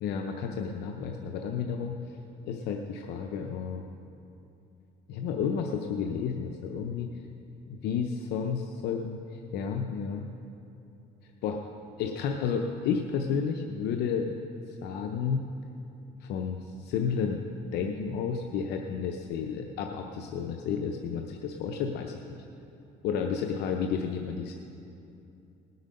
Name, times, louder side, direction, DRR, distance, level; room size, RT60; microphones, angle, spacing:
voice 1, 0.0-2.2 2.4-3.8 5.1-7.1 7.7-10.3 11.2-11.6 12.0-14.3 14.7-15.5 16.2-17.4 17.7-22.4 23.0-24.6, left 6 dB, 80° left, 3 dB, 0.8 m, -31 dB
19.0 x 8.1 x 5.3 m, 2.7 s
cardioid pair, 110°, 17 cm